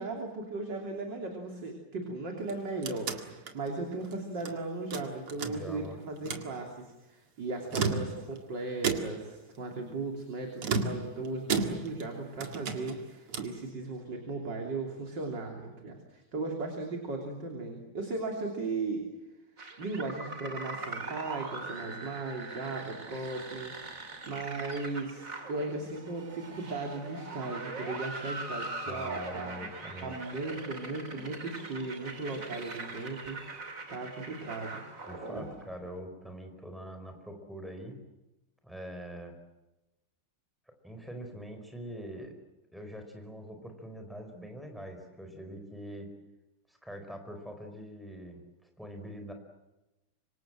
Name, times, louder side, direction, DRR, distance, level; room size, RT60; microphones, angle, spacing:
voice 1, 0.0-19.0 19.8-23.7 24.3-29.5 30.0-33.4 33.9-34.8, right 3 dB, 55° right, 2 dB, 3.8 m, -37 dB
sound 1, 2.4-4.6 4.9-5.9 6.2-6.5 7.5-8.4 8.8-9.4 10.6-12.1 12.4-13.6, right 5 dB, 90° right, 3.0 m, -34 dB
voice 2, 5.4-6.0 7.7-8.1 28.8-30.2 35.1-38.0 38.6-39.4 40.8-42.3 42.7-46.1 46.7-49.3, equal, ahead, 5 dB, 4.8 m, -44 dB
sound 2, 19.6-35.9, right 3 dB, 40° right, 3.0 m, -41 dB
26.5 x 24.5 x 7.7 m, 1.0 s
omnidirectional pair, 2.4 m